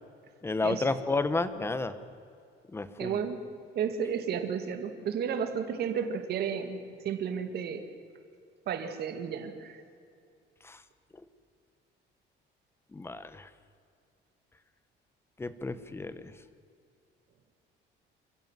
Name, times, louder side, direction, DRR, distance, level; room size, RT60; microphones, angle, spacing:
voice 1, 0.4-1.9 2.7-3.2 10.6-10.8 12.9-13.5 15.4-16.3, left 3 dB, 10° left, 13 dB, 1.0 m, -31 dB
voice 2, 3.0-3.4 3.8-7.8 8.7-9.8, right 7 dB, 55° right, 7 dB, 2.1 m, -32 dB
27.0 x 15.5 x 7.6 m, 2.4 s
cardioid pair, 155°, 20 cm